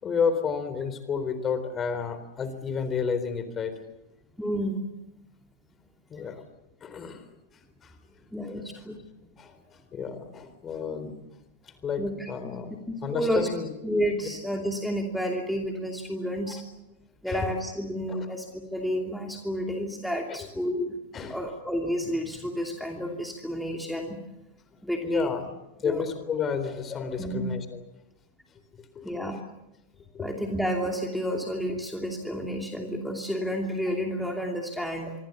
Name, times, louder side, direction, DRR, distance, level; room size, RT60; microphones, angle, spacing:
voice 1, 0.0-3.7 6.1-6.4 6.8-7.2 7.8-7.9 8.8-8.9 9.4-9.5 9.9-11.2 11.6-13.7 16.5-16.6 17.3-17.5 18.1-18.3 20.3-20.4 21.1-21.4 25.0-25.5 25.8-27.8 29.0-29.4 30.1-30.3, left 6 dB, 25° left, 11 dB, 4.0 m, -31 dB
voice 2, 4.4-4.8 8.3-9.0 12.0-12.3 12.7-13.5 13.8-16.6 17.2-21.0 21.3-24.2 24.8-25.4 25.8-26.0 27.2-27.4 29.0-29.4 30.2-35.1, equal, ahead, 1 dB, 2.8 m, -30 dB
25.5 x 25.0 x 7.2 m, 0.93 s
figure-of-eight pair, 90°, 0 cm